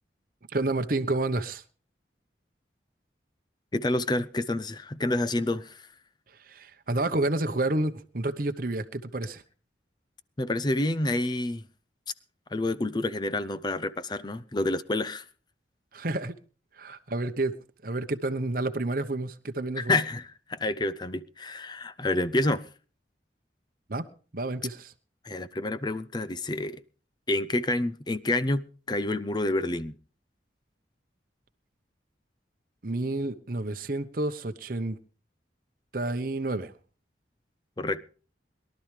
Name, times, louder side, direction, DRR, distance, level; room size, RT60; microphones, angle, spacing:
voice 1, 0.5-1.6 6.4-9.4 15.9-16.4 16.8-17.5 17.8-20.0 23.9-24.1 24.3-24.9 32.8-35.0 35.9-36.7, right 2 dB, 50° right, 0.9 m, -29 dB
voice 2, 3.7-5.9 10.4-11.6 12.5-15.2 19.8-22.6 25.2-26.8 27.3-29.9 37.8-38.1, left 2 dB, 25° left, 0.5 m, -28 dB
22.5 x 12.0 x 3.3 m
head